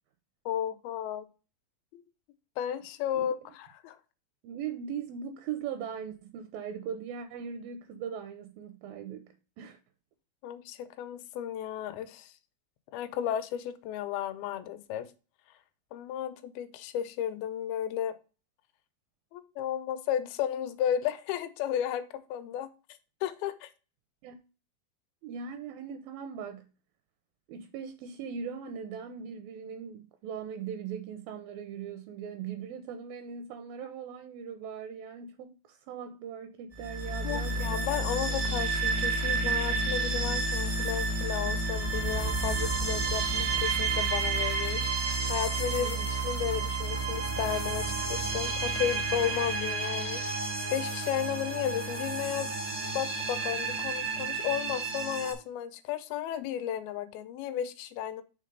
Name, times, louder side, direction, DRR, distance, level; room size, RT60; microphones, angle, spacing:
voice 1, 0.5-1.3 1.9-2.0 2.6-4.0 10.4-12.3 12.9-15.1 15.9-18.1 19.3-22.7 23.2-23.7 37.2-44.8 45.3-46.0 46.2-50.2 50.7-52.5 53.0-58.2, left 10 dB, 80° left, 2.4 m, -33 dB
voice 2, 4.4-9.8 24.2-24.4 25.2-26.7 27.5-38.3 45.8-46.1, right 7 dB, 80° right, 2.2 m, -40 dB
sound 1, 36.7-55.3, right 3 dB, 55° right, 0.5 m, -30 dB
6.5 x 3.5 x 5.3 m
omnidirectional pair, 4.6 m